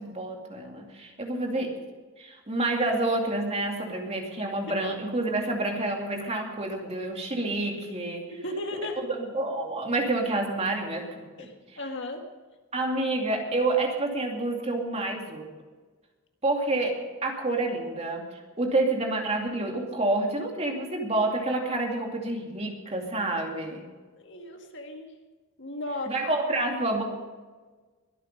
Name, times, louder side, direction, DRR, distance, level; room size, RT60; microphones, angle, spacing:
voice 1, 0.0-1.8 2.2-8.3 9.1-11.8 12.7-15.5 16.4-18.2 18.6-23.8 26.1-27.0, right 2 dB, 30° right, 1 dB, 2.5 m, -28 dB
voice 2, 8.4-9.1 11.4-12.3 24.2-25.1 25.6-26.1, left 1 dB, 60° left, 4 dB, 1.9 m, -35 dB
22.5 x 8.8 x 5.3 m, 1.3 s
head